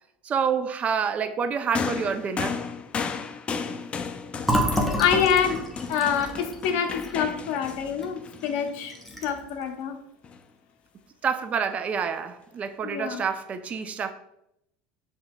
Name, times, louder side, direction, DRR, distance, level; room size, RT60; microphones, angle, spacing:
voice 1, 0.2-2.6 11.2-14.1, right 6 dB, 35° right, 0.4 m, -28 dB
sound 1, 1.7-9.3 10.2-10.4, left 5 dB, 25° left, 0.4 m, -34 dB
Fill (with liquid), 4.4-8.1 8.4-8.6 8.9-9.5, equal, 5° left, 0.8 m, -29 dB
voice 2, 5.0-5.6 5.9-8.9 9.2-10.0 12.8-13.2, left 7 dB, 65° left, 0.7 m, -26 dB
6.7 x 2.9 x 2.2 m
supercardioid pair, 105°, 4 cm